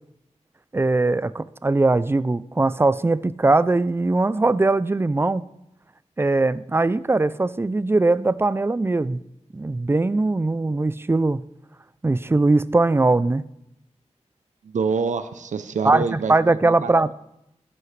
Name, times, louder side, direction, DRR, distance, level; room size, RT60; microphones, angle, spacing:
voice 1, 0.7-5.4 6.2-9.2 9.5-11.4 12.0-13.4 15.8-17.1, right 2 dB, 20° right, 17 dB, 0.4 m, -20 dB
voice 2, 14.6-16.3 16.6-17.1, right 5 dB, 85° right, 10 dB, 0.5 m, -26 dB
13.5 x 11.0 x 3.2 m, 0.84 s
wide cardioid pair, 75°, 12 cm